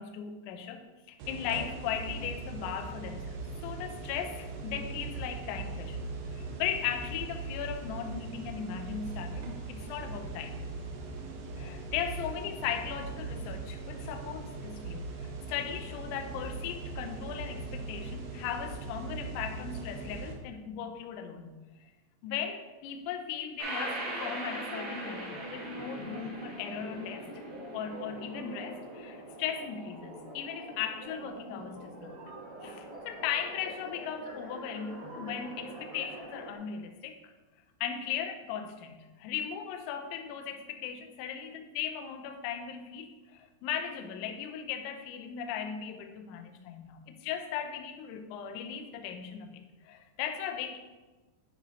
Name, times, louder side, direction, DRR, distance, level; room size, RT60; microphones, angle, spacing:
voice 1, 0.0-10.7 11.6-21.5 22.2-27.3 27.7-32.2 32.6-37.2 37.8-41.5 41.8-50.8, left 8 dB, 85° left, 5 dB, 2.7 m, -37 dB
sound 1, 1.2-20.3, right 3 dB, 85° right, 3.7 m, -40 dB
sound 2, 23.6-36.6, right 1 dB, 65° right, 2.7 m, -42 dB
9.7 x 6.1 x 2.8 m, 1.2 s
omnidirectional pair, 5.9 m